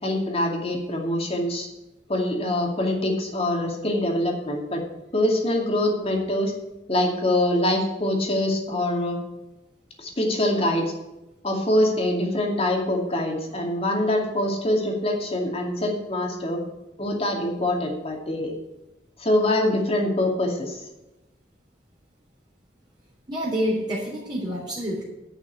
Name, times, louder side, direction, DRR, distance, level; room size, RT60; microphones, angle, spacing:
voice 1, 0.0-1.7 2.1-4.8 5.1-6.5 6.9-9.2 10.0-10.9 11.4-16.6 17.0-18.5 19.2-20.8, left 1 dB, 35° left, 2 dB, 2.4 m, -24 dB
voice 2, 23.3-25.0, equal, 25° right, -7 dB, 3.3 m, -27 dB
11.0 x 6.0 x 8.8 m, 0.98 s
head